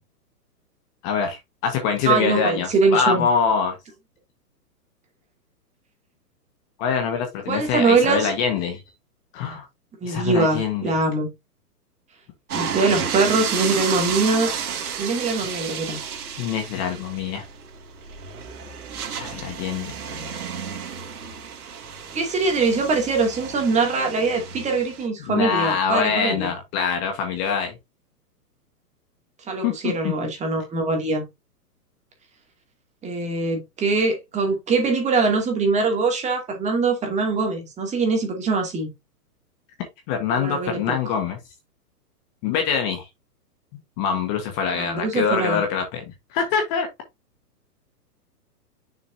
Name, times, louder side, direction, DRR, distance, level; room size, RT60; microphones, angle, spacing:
voice 1, 1.0-3.8 6.8-8.8 9.3-9.6 10.0-10.9 16.4-17.4 19.1-19.9 25.3-27.7 29.6-30.1 40.1-41.4 42.4-43.1 44.0-46.0 46.3-46.9, left 6 dB, 30° left, 1.4 m, -24 dB
voice 2, 2.1-3.3 7.5-8.3 10.0-11.3 12.5-14.5 15.0-16.0 22.1-26.5 29.5-31.2 33.0-38.9 40.3-40.9 44.7-45.6, right 3 dB, 15° right, 2.4 m, -22 dB
sound 1, 12.5-25.0, right 7 dB, 65° right, 2.9 m, -32 dB
6.6 x 6.6 x 2.7 m
hypercardioid pair, 140°, 48 cm